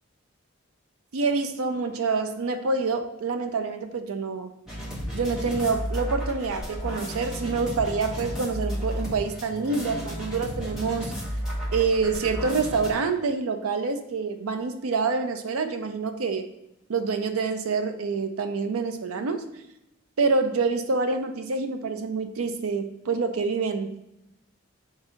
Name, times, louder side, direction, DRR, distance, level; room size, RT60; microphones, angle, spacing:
voice 1, 1.1-4.5 5.1-11.1 11.7-16.5 16.9-19.5 20.2-24.0, right 4 dB, 90° right, 6 dB, 0.5 m, -27 dB
sound 1, 4.7-12.9, equal, 5° right, 1.0 m, -33 dB
3.9 x 2.7 x 4.3 m, 0.88 s
head